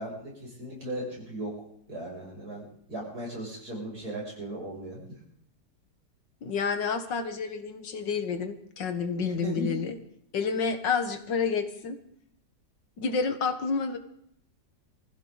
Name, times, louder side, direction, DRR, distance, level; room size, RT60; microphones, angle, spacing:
voice 1, 0.0-5.2 9.4-9.8, right 1 dB, 55° right, -4 dB, 7.4 m, -37 dB
voice 2, 6.4-10.0 10.3-12.0 13.0-14.0, left 5 dB, 80° left, 7 dB, 2.0 m, -29 dB
24.0 x 15.0 x 4.0 m, 0.68 s
omnidirectional pair, 1.9 m